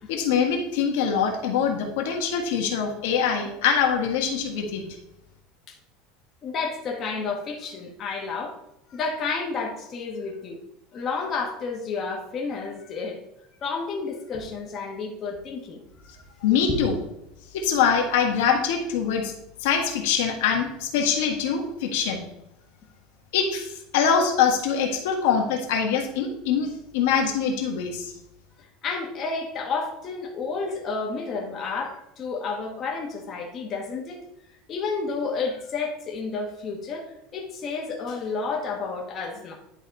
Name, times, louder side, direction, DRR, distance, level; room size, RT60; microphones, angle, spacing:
voice 1, 0.1-4.8 16.4-17.0 17.5-19.3 19.6-22.2 23.3-28.1, left 7 dB, 75° left, 2 dB, 1.5 m, -24 dB
voice 2, 6.4-8.5 8.9-10.6 10.9-13.2 13.6-15.8 16.2-16.3 16.7-16.8 28.8-34.2 34.7-39.5, left 4 dB, 25° left, -1 dB, 1.2 m, -31 dB
10.5 x 4.1 x 4.1 m, 0.84 s
cardioid pair, 165°, 0 cm